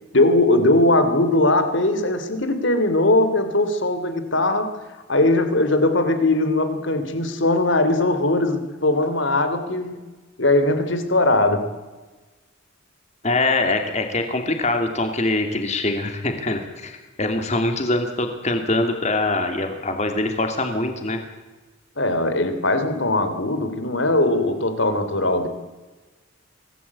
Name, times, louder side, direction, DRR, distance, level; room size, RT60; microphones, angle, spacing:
voice 1, 0.1-4.7 5.1-10.0 10.4-11.7 22.0-25.5, left 2 dB, 60° left, 9 dB, 3.1 m, -20 dB
voice 2, 13.2-21.2, left 2 dB, 35° left, 5 dB, 2.8 m, -23 dB
25.0 x 18.5 x 8.6 m, 1.2 s
head